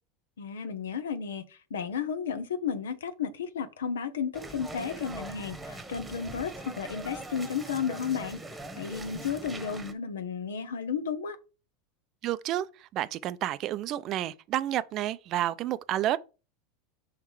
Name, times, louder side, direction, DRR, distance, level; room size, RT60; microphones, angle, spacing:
voice 1, 0.4-11.4, left 7 dB, 85° left, 0.8 m, -33 dB
sound 1, 4.3-9.9, right 1 dB, 10° right, 1.1 m, -42 dB
voice 2, 12.2-16.2, right 12 dB, 45° right, 0.4 m, -30 dB
5.6 x 3.6 x 4.7 m
hypercardioid pair, 95°, 0 cm